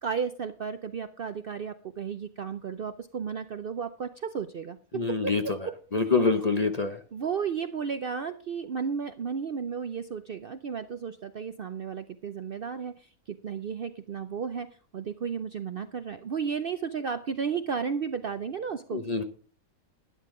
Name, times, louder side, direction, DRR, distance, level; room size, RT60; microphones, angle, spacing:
voice 1, 0.0-5.7 6.0-6.3 7.1-19.0, right 6 dB, 60° right, 10 dB, 0.6 m, -33 dB
voice 2, 4.9-5.4 5.9-7.0 18.9-19.2, left 4 dB, 35° left, 7 dB, 0.7 m, -25 dB
12.0 x 10.5 x 3.7 m, 0.39 s
omnidirectional pair, 1.5 m